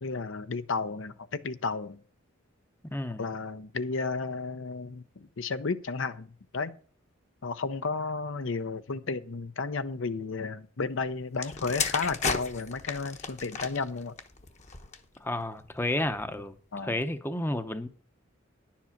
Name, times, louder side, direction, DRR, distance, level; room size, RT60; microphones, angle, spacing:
voice 1, 0.0-2.0 3.2-6.7 7.4-14.2 16.7-17.0, left 4 dB, 70° left, 0.7 m, -33 dB
voice 2, 2.9-3.2 15.2-16.5 16.8-17.9, left 1 dB, 10° left, 0.7 m, -31 dB
sound 1, 11.3-15.2 16.0-16.2, left 5 dB, 35° left, 1.0 m, -34 dB
10.5 x 7.4 x 5.8 m
head